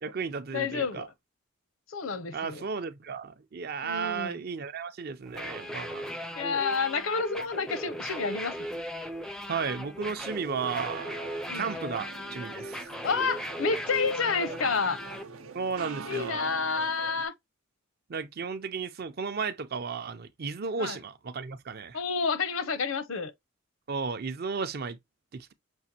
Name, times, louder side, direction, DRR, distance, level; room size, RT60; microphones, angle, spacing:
voice 1, 0.0-1.1 2.3-6.1 9.5-11.1 11.5-12.9 15.5-16.5 18.1-22.0 23.9-25.0 25.3-25.5, right 5 dB, 50° right, 0.5 m, -34 dB
voice 2, 0.5-1.1 1.9-2.6 3.8-4.4 6.3-8.6 11.5-11.7 13.0-15.0 16.1-17.3 20.8-21.0 21.9-23.3, left 5 dB, 75° left, 0.7 m, -29 dB
sound 1, 5.3-15.2, equal, 5° left, 0.4 m, -38 dB
sound 2, 10.1-17.3, right 5 dB, 85° right, 0.7 m, -44 dB
6.2 x 2.4 x 2.7 m
head